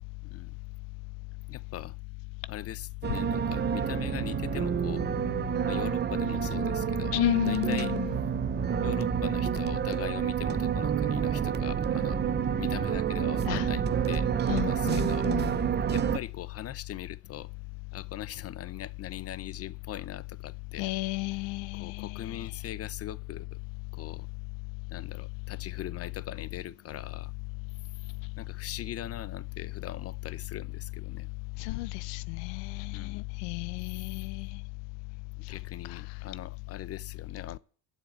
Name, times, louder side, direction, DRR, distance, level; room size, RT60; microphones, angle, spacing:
voice 1, 1.5-2.0 2.5-5.1 5.7-7.1 7.5-7.9 8.8-12.2 12.6-15.3 15.9-17.5 17.9-20.9 21.7-23.6 23.9-24.3 24.9-27.3 28.4-31.3 32.9-33.2 33.9-34.0 35.4-37.6, left 11 dB, 35° left, 0.7 m, -41 dB
sound 1, 3.0-16.2, right 8 dB, 25° right, 0.6 m, -29 dB
voice 2, 7.1-8.2 13.5-13.7 14.5-15.6 20.8-22.5 31.6-34.6 35.9-36.0, left 21 dB, 85° left, 0.6 m, -32 dB
12.0 x 7.3 x 8.0 m
cardioid pair, 115°, 42 cm